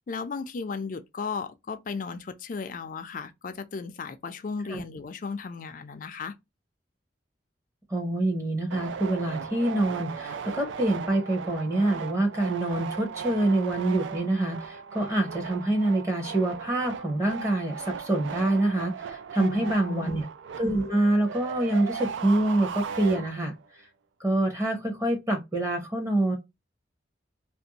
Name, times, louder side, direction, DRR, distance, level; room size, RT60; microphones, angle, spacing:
voice 1, 0.1-6.4 19.4-20.2, left 4 dB, 45° left, 0.4 m, -35 dB
voice 2, 7.9-20.2 20.6-23.5 24.2-26.4, right 1 dB, 15° right, 0.7 m, -26 dB
sound 1, 8.7-23.7, right 6 dB, 80° right, 0.4 m, -37 dB
2.5 x 2.1 x 2.7 m
head